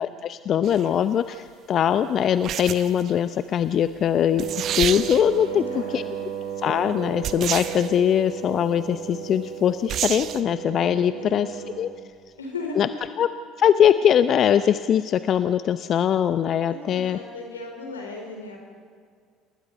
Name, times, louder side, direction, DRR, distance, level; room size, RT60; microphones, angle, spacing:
voice 1, 0.0-4.4 4.7-6.3 6.6-11.9 12.8-12.9 13.2-13.3 13.6-17.2, left 9 dB, 50° left, 12 dB, 0.7 m, -22 dB
sound 1, 0.6-0.9 2.4-3.1 4.1-4.2 4.4-5.4 7.2-7.9 9.9-10.4, right 10 dB, 55° right, 1.1 m, -29 dB
Wind instrument woodwind instrument, 4.3-11.9, right 8 dB, 80° right, 5.7 m, -35 dB
voice 2, 5.4-6.3 11.1-12.1 12.4-12.8 16.7-18.6, left 3 dB, 90° left, 1 dB, 4.4 m, -37 dB
28.5 x 20.5 x 5.4 m, 2.1 s
hypercardioid pair, 60°, 0 cm